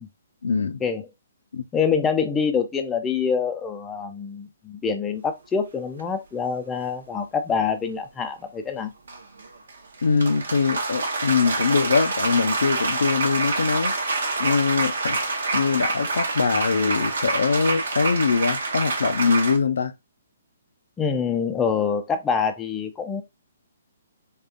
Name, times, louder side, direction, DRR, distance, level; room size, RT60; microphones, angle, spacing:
voice 1, 0.4-0.8 1.5-1.6 10.0-13.9 14.4-15.2 15.5-19.9, left 5 dB, 75° left, 0.5 m, -22 dB
voice 2, 1.7-8.9 21.0-23.2, left 6 dB, 15° left, 0.5 m, -25 dB
sound 1, 6.0-6.1 9.1-19.6, right 3 dB, 70° right, 0.9 m, -26 dB
3.6 x 2.4 x 2.5 m
hypercardioid pair, 135°, 0 cm